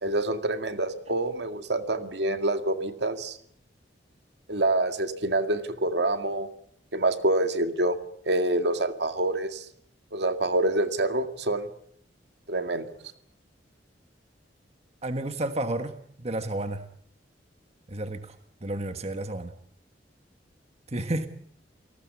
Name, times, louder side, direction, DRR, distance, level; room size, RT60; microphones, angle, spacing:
voice 1, 0.0-3.4 4.5-6.5 6.9-8.0 8.3-9.7 10.1-11.7 12.5-12.9, right 2 dB, 65° right, 2.1 m, -26 dB
voice 2, 15.0-16.8 17.9-19.5 20.9-21.3, right 1 dB, 35° right, 1.4 m, -31 dB
28.0 x 19.0 x 8.3 m
head